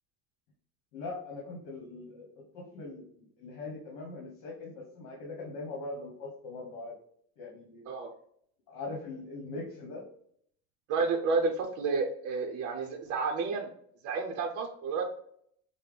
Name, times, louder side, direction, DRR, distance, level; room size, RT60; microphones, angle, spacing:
voice 1, 0.9-3.1 3.4-6.9 7.4-7.9 8.7-10.1, left 3 dB, 65° left, -1 dB, 1.3 m, -41 dB
voice 2, 10.9-13.7 14.0-15.0, right 4 dB, 40° right, 1 dB, 0.6 m, -30 dB
5.6 x 2.1 x 3.4 m, 0.65 s
cardioid pair, 150°, 36 cm